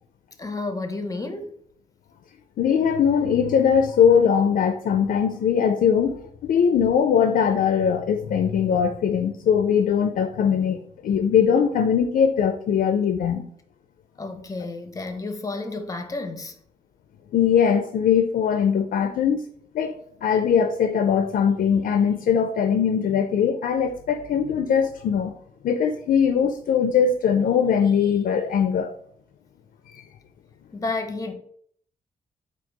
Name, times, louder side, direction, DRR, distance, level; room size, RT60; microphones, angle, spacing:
voice 1, 0.4-1.6 14.2-16.6 30.7-31.3, left 3 dB, 25° left, 0.6 m, -31 dB
voice 2, 2.6-13.4 17.3-19.4 19.7-25.3 25.6-28.9 29.9-30.0, left 7 dB, 75° left, 0.4 m, -21 dB
4.5 x 2.3 x 3.8 m
cardioid pair, 100°, 15 cm